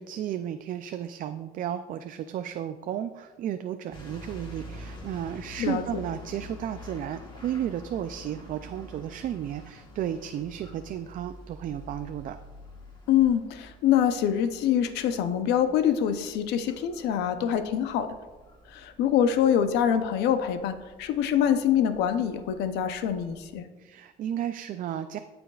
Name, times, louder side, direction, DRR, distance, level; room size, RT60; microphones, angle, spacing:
voice 1, 0.0-12.4 23.8-25.2, right 10 dB, 55° right, 9 dB, 0.4 m, -33 dB
sound 1, 3.9-23.5, left 1 dB, 25° left, 2.0 m, -47 dB
voice 2, 13.1-18.1 18.7-23.7, left 9 dB, 90° left, 10 dB, 0.6 m, -25 dB
14.5 x 5.1 x 2.4 m, 1.2 s
cardioid pair, 110°, 17 cm